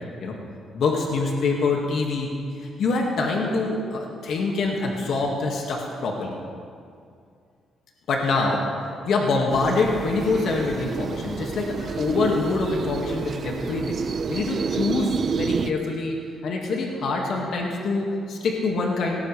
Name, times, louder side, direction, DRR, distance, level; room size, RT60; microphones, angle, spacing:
voice 1, 0.7-2.3 2.6-6.4 8.1-8.6 9.1-14.0 14.3-16.2 16.4-19.2, left 3 dB, 70° left, -1 dB, 2.0 m, -25 dB
sound 1, 9.5-15.7, right 5 dB, 50° right, 0.6 m, -29 dB
18.0 x 17.5 x 3.4 m, 2.3 s
cardioid pair, 90°, 0 cm